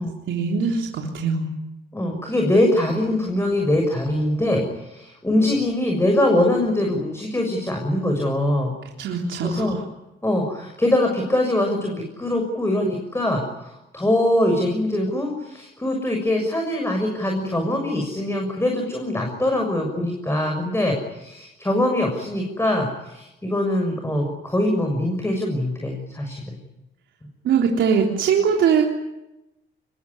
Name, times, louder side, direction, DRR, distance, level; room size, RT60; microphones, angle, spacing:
voice 1, 0.3-1.5 9.0-9.6 27.5-28.8, right 6 dB, 75° right, 0 dB, 3.6 m, -21 dB
voice 2, 1.9-8.7 9.4-9.8 10.2-26.6, left 1 dB, 10° left, 2 dB, 6.7 m, -23 dB
25.5 x 22.0 x 9.9 m, 0.94 s
cardioid pair, 90°, 20 cm